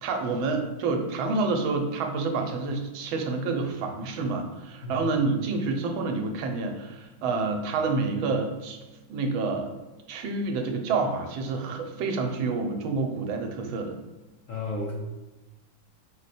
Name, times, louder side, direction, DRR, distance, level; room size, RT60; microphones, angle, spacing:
voice 1, 0.0-8.8 9.1-9.7 10.1-13.9, right 3 dB, 90° right, 4 dB, 1.5 m, -28 dB
voice 2, 4.8-5.2 14.5-14.9, left 3 dB, 80° left, -3 dB, 0.7 m, -33 dB
4.9 x 2.2 x 4.1 m, 1.1 s
omnidirectional pair, 2.1 m